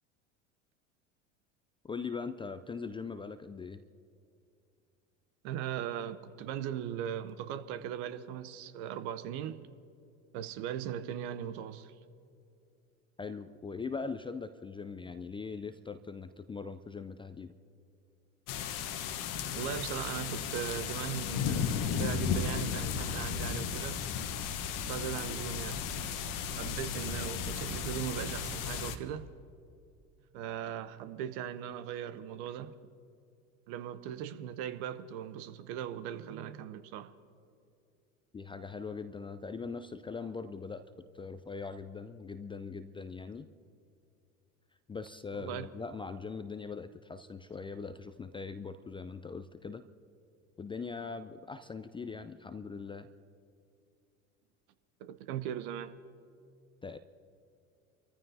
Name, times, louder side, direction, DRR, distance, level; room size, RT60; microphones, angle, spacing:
voice 1, 1.9-3.8 13.2-17.5 38.3-40.8 41.1-43.5 44.9-49.8 50.6-53.1 56.8-57.0, left 4 dB, 15° left, 0.4 m, -41 dB
voice 2, 5.4-9.6 10.3-11.9 19.5-24.0 24.9-25.9 26.4-29.3 30.3-32.7 33.7-37.1 45.4-45.7 55.0-55.9, right 10 dB, 60° right, 0.9 m, -39 dB
sound 1, 18.5-29.0, left 6 dB, 50° left, 1.2 m, -35 dB
29.0 x 14.5 x 2.7 m
hypercardioid pair, 75°, 40 cm